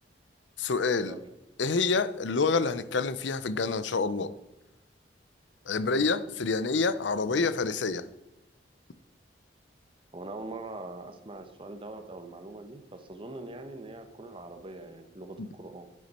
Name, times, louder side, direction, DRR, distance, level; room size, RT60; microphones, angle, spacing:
voice 1, 0.6-1.2 1.6-4.3 5.7-8.0 15.4-15.5, left 4 dB, 70° left, 14 dB, 0.6 m, -27 dB
voice 2, 10.1-15.9, right 2 dB, 30° right, 7 dB, 1.1 m, -42 dB
10.5 x 9.6 x 4.3 m, 0.99 s
head